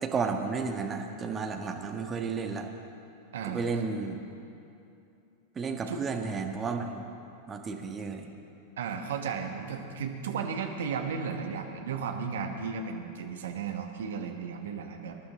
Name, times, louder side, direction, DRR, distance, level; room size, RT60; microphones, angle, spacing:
voice 1, 0.0-2.7 3.4-4.2 5.5-7.0 7.5-8.3, right 5 dB, 20° right, 3 dB, 1.4 m, -32 dB
voice 2, 3.3-3.6 5.9-6.0 8.8-15.2, right 6 dB, 60° right, 4 dB, 1.5 m, -34 dB
25.5 x 11.0 x 3.9 m, 2.7 s
figure-of-eight pair, 90°, 0 cm